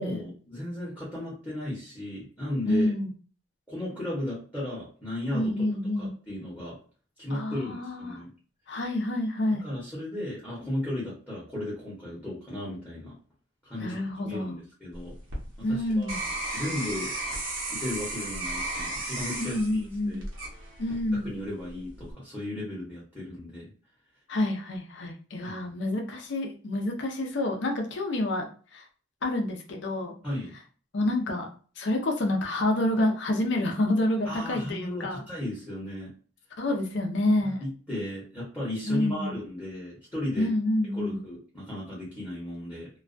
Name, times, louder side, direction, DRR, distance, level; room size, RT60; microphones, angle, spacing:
voice 1, 0.0-2.9 3.7-5.7 5.9-6.8 7.2-8.3 9.5-13.1 13.6-15.1 15.6-16.2 16.5-17.1 17.7-20.2 21.1-23.7 25.4-25.6 30.2-30.5 34.2-36.1 37.4-40.5 40.9-42.9, left 1 dB, 10° left, -8 dB, 0.8 m, -35 dB
voice 2, 2.6-3.1 5.3-6.1 7.3-8.2 8.7-9.7 13.8-14.5 15.6-16.2 19.4-20.2 20.8-21.3 24.3-28.8 29.2-30.1 30.9-31.5 31.8-35.2 36.6-37.6 38.8-39.4 40.3-41.2, left 1 dB, 60° left, 3 dB, 0.5 m, -28 dB
sound 1, 14.9-21.1 21.7-22.1, right 2 dB, 85° right, 0.8 m, -34 dB
2.3 x 2.2 x 2.4 m, 0.40 s
head